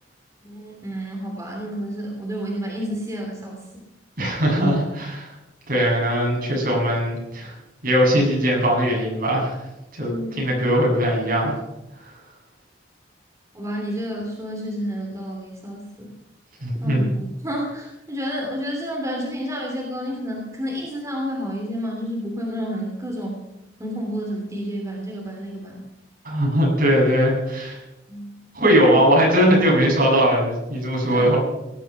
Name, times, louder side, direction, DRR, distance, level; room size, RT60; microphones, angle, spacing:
voice 1, 0.4-3.6 10.1-10.4 13.5-16.1 16.8-23.4 23.8-25.9 28.1-28.4 28.8-29.0 31.1-31.3, equal, 20° right, -1 dB, 3.0 m, -30 dB
voice 2, 4.2-5.3 5.7-7.5 7.8-9.6 10.0-10.1 10.4-11.6 16.6-17.1 26.2-27.8 28.5-31.4, equal, 55° right, -2 dB, 7.4 m, -20 dB
19.0 x 11.5 x 6.1 m, 0.93 s
head